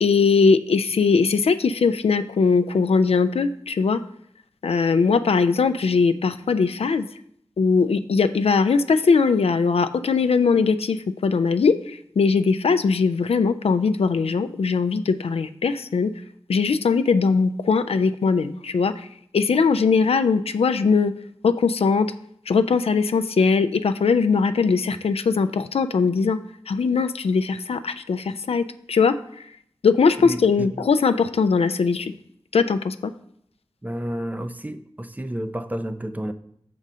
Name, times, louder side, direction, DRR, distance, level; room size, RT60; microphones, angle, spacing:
voice 1, 0.0-4.0 4.6-7.1 7.6-16.1 16.5-19.1 19.3-21.1 21.4-22.1 22.5-26.4 26.7-29.4 29.8-32.1 32.5-33.1, left 5 dB, 75° left, 10 dB, 0.4 m, -20 dB
voice 2, 30.2-30.9 33.8-36.3, right 1 dB, 15° right, 10 dB, 0.4 m, -31 dB
6.1 x 3.8 x 5.5 m, 0.68 s
wide cardioid pair, 50°, 10 cm